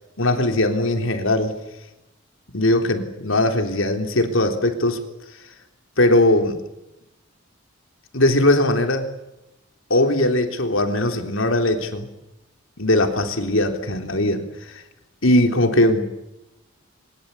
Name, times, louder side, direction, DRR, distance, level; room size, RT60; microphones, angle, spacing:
voice 1, 0.2-1.6 2.5-5.0 6.0-6.6 8.1-9.1 9.9-12.1 12.8-14.8 15.2-16.0, left 1 dB, 70° left, 5 dB, 3.8 m, -20 dB
23.5 x 21.5 x 8.6 m, 0.91 s
head